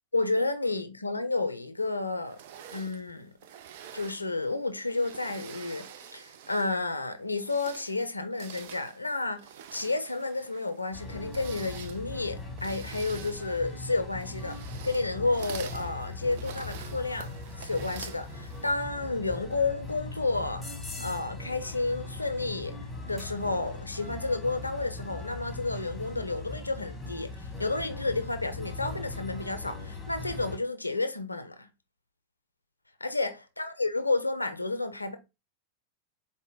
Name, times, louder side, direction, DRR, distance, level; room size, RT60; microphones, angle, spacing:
voice 1, 0.1-2.4 2.7-3.3 3.9-9.5 9.7-14.6 14.8-20.7 21.0-22.8 23.1-31.7 33.0-35.2, left 3 dB, 85° left, 0.5 m, -31 dB
sound 1, 2.3-6.8 7.3-18.8, right 9 dB, 50° right, 0.4 m, -47 dB
sound 2, 10.9-30.6, left 3 dB, 5° left, 1.2 m, -40 dB
4.3 x 2.1 x 3.4 m
figure-of-eight pair, 90°, 0 cm